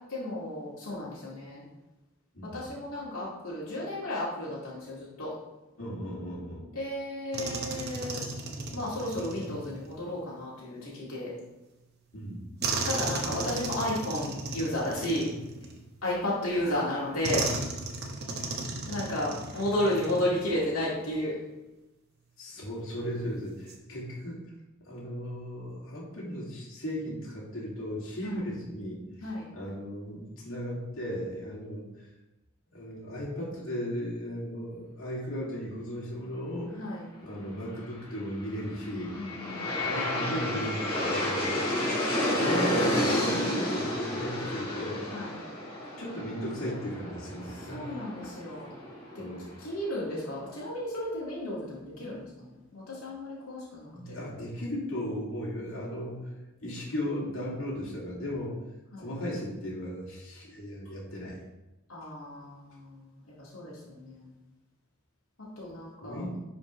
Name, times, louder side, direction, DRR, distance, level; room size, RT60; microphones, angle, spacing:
voice 1, 0.1-1.6 2.4-5.3 6.7-8.2 8.7-11.3 12.8-15.3 16.0-17.5 18.9-21.4 28.2-28.4 29.2-29.5 36.7-37.1 38.8-39.7 42.7-42.8 45.1-45.3 47.5-48.7 49.1-49.2 49.6-54.2 58.9-59.1 61.9-64.3 65.4-66.3, left 1 dB, 85° left, -7 dB, 2.2 m, -33 dB
voice 2, 2.3-2.7 5.8-6.7 12.1-12.5 16.5-17.2 18.2-18.4 22.4-24.4 24.8-29.0 29.5-32.1 32.7-36.7 37.2-39.2 39.7-41.5 42.3-45.0 46.0-47.9 48.2-48.3 49.2-49.5 53.9-56.3 56.6-58.7 59.0-61.4 66.0-66.4, equal, 70° left, -5 dB, 2.5 m, -36 dB
sound 1, 7.3-10.0 12.6-16.1 17.2-20.6 20.9-21.1 23.4-23.8, right 3 dB, 50° right, 1.0 m, -35 dB
Aircraft, 38.5-49.6, left 1 dB, 25° left, 2.5 m, -31 dB
10.5 x 5.1 x 3.1 m, 1.0 s
head